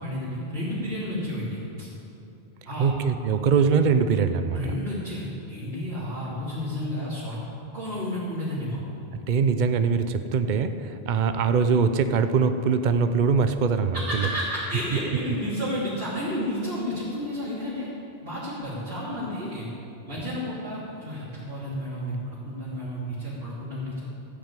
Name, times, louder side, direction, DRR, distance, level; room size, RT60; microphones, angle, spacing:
voice 1, 0.0-1.9 2.7-2.9 4.5-7.5 7.7-8.8 13.9-17.9 18.2-19.7 20.1-24.1, equal, 70° right, -12 dB, 3.5 m, -31 dB
voice 2, 2.8-4.6 9.3-14.3, right 5 dB, 50° right, 9 dB, 0.8 m, -22 dB
14.0 x 6.3 x 9.0 m, 2.8 s
omnidirectional pair, 1.1 m